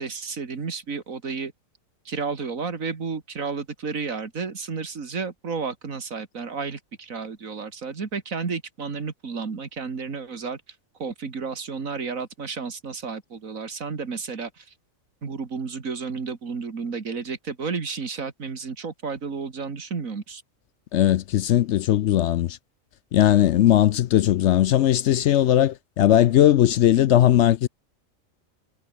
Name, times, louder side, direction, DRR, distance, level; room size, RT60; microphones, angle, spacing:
voice 1, 0.0-1.5 2.1-10.6 11.0-14.7 15.2-20.4, right 5 dB, 75° right, 2.5 m, -32 dB
voice 2, 20.9-22.6 23.1-27.7, left 12 dB, 65° left, 0.8 m, -18 dB
omnidirectional pair, 1.4 m